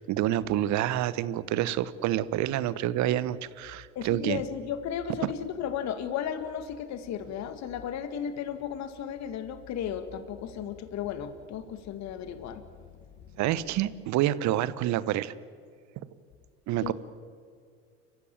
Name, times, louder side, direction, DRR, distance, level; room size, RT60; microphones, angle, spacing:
voice 1, 0.0-4.4 5.2-5.3 13.4-15.3 16.7-16.9, right 13 dB, 50° right, 17 dB, 1.2 m, -28 dB
voice 2, 4.0-12.6 13.3-13.4 16.8-16.9, left 8 dB, 50° left, 10 dB, 1.9 m, -34 dB
29.5 x 15.5 x 8.9 m, 2.3 s
hypercardioid pair, 70°, 36 cm